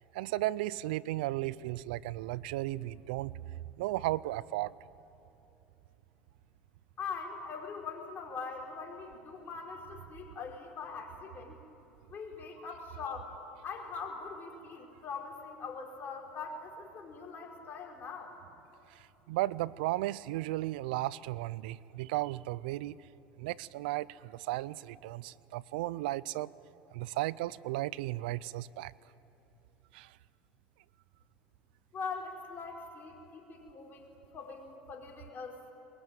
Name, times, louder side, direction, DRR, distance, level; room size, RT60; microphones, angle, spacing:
voice 1, 0.1-3.3 3.8-4.7 18.9-19.0 19.3-23.0 23.4-26.5 26.9-28.9 29.9-30.1, right 17 dB, 75° right, 21 dB, 0.5 m, -35 dB
voice 2, 7.0-11.6 12.1-13.3 13.6-18.3 31.9-35.6, left 5 dB, 40° left, 2 dB, 4.9 m, -42 dB
22.0 x 22.0 x 9.1 m, 3.0 s
hypercardioid pair, 85°, 5 cm